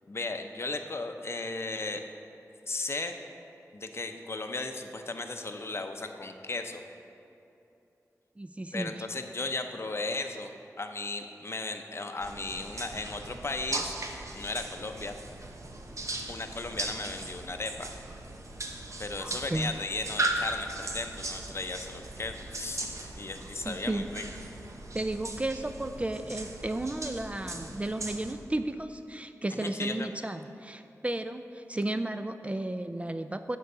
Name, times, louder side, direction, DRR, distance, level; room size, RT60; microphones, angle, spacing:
voice 1, 0.1-2.1 2.7-3.2 3.7-6.8 8.7-13.9 14.3-15.1 16.3-17.9 19.0-24.2 29.5-30.1, left 3 dB, 45° left, 6 dB, 0.6 m, -36 dB
voice 2, 8.4-9.0 19.5-19.7 23.6-24.0 24.9-33.6, right 1 dB, 20° right, 9 dB, 0.4 m, -33 dB
sound 1, 12.2-28.3, right 2 dB, 60° right, 0.9 m, -38 dB
9.4 x 4.6 x 6.6 m, 2.8 s
wide cardioid pair, 60°, 6 cm